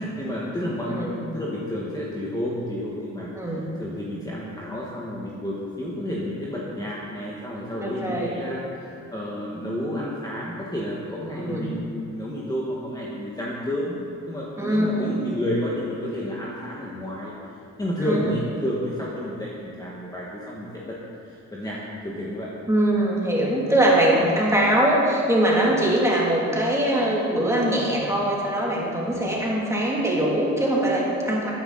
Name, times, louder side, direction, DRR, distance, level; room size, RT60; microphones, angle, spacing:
voice 1, 0.0-17.3 17.8-22.5 24.2-24.3 25.8-25.9 29.1-29.3, left 1 dB, 10° left, -5 dB, 1.8 m, -31 dB
voice 2, 3.3-3.7 7.8-8.3 11.3-11.7 14.6-15.2 18.0-18.2 22.7-31.5, right 1 dB, 10° right, -4 dB, 3.0 m, -22 dB
13.0 x 10.0 x 4.2 m, 2.7 s
cardioid pair, 90°, 30 cm